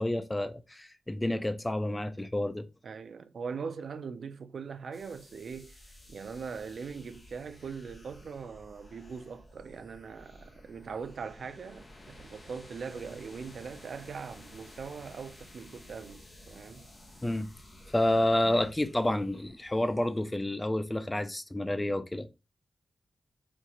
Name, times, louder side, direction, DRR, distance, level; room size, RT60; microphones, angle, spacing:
voice 1, 0.0-2.7 17.2-17.5 17.9-22.3, left 1 dB, 15° left, 0.4 m, -29 dB
voice 2, 2.8-16.9, right 5 dB, 65° right, 0.3 m, -41 dB
sound 1, 4.9-20.2, left 1 dB, 35° left, 0.9 m, -53 dB
4.3 x 2.4 x 2.9 m
wide cardioid pair, 135°, 0 cm